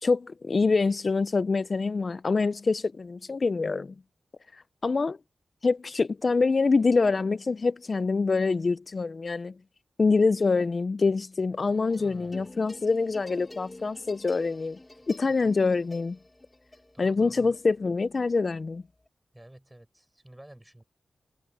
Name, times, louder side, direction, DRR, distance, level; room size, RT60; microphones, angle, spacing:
voice 1, 0.0-3.9 4.5-5.2 5.6-9.5 10.0-14.8 15.1-16.2 17.0-18.8, left 4 dB, 40° left, 0.4 m, -25 dB
sound 1, 11.7-19.1, left 1 dB, 15° left, 5.6 m, -49 dB
voice 2, 12.0-12.5 13.8-13.9 14.9-15.0 15.4-15.5 16.9-17.5 19.3-20.8, right 1 dB, 10° right, 7.0 m, -50 dB
wide cardioid pair, 125°, 0 cm